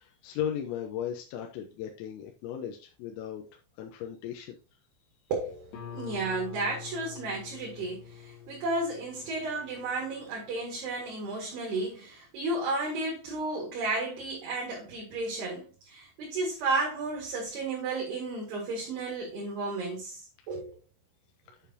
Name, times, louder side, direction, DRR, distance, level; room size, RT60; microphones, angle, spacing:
voice 1, 0.0-3.4 3.8-4.6, left 9 dB, 90° left, 3.8 m, -36 dB
voice 2, 5.3-20.8, right 2 dB, 60° right, 3.7 m, -33 dB
Guitar, 5.7-11.1, left 9 dB, 60° left, 3.7 m, -46 dB
8.8 x 7.0 x 2.9 m
omnidirectional pair, 5.9 m